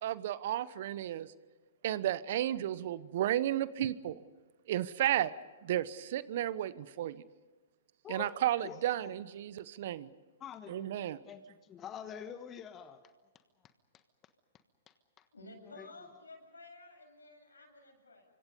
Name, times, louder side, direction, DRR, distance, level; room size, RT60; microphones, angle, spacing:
voice 1, 0.0-1.3 1.8-4.2 4.7-5.3 5.6-7.2 8.1-10.1 10.7-11.2, right 12 dB, 55° right, 1.0 m, -33 dB
voice 2, 8.6-9.1 10.4-11.0 11.2-13.0 13.9-14.0 14.9-15.3 15.6-15.9, left 8 dB, 25° left, 1.4 m, -47 dB
voice 3, 15.3-18.2, left 2 dB, 85° left, 7.6 m, -53 dB
30.0 x 25.0 x 5.4 m
figure-of-eight pair, 115°, 0 cm